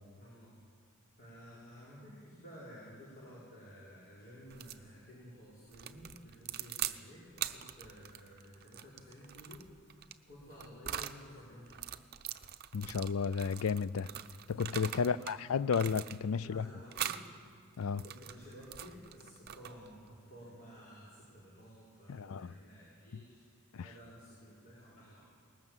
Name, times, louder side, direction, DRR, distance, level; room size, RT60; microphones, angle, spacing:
voice 1, 0.2-0.5 1.2-9.8 10.3-11.8 15.0-15.5 16.4-17.2 18.0-23.4 23.8-25.2, equal, 40° left, 5.1 m, -53 dB
sound 1, 4.5-4.8 5.7-7.0 7.3-11.2 11.7-15.4 15.7-16.4 16.9-17.3 17.8-19.9, right 10 dB, 45° right, 0.7 m, -42 dB
voice 2, 12.7-14.1 14.5-16.7 17.8-18.0 22.1-22.5 23.1-23.2 23.7-23.9, left 6 dB, 70° left, 0.4 m, -33 dB
19.5 x 18.5 x 7.4 m
head